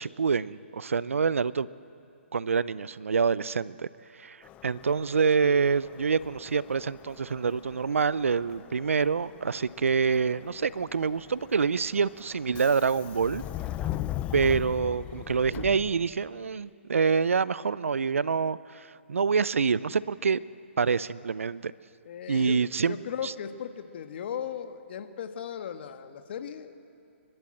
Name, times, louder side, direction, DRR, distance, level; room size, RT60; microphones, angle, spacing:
voice 1, 0.0-1.7 2.3-3.9 4.2-4.4 4.6-13.4 14.3-20.4 20.8-21.7 22.3-23.0 23.2-23.3, right 5 dB, 80° right, 19 dB, 0.5 m, -26 dB
Subway metro underground, 4.4-16.4, left 13 dB, 20° left, 0.4 m, -40 dB
voice 2, 22.0-22.6 22.8-26.7, left 8 dB, 50° left, 8 dB, 1.4 m, -37 dB
30.0 x 12.0 x 7.7 m, 2.6 s
hypercardioid pair, 140°, 7 cm